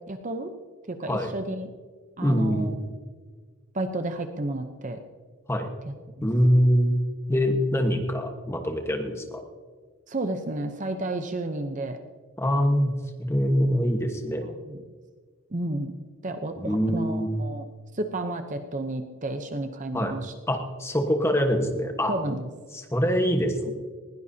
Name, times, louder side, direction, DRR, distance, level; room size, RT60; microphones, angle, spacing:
voice 1, 0.1-0.5 0.9-1.7 2.2-2.7 3.7-5.0 5.9-6.3 10.1-12.0 14.4-14.8 15.5-17.7 17.9-20.3 22.1-22.5, right 2 dB, 35° right, 7 dB, 0.7 m, -32 dB
voice 2, 2.2-2.8 5.5-5.7 6.2-6.9 7.3-9.4 12.4-12.9 13.2-14.5 16.6-17.3 19.9-20.1 20.5-22.1 22.7-23.7, equal, 10° left, 4 dB, 1.2 m, -24 dB
20.0 x 17.5 x 2.8 m, 1.5 s
head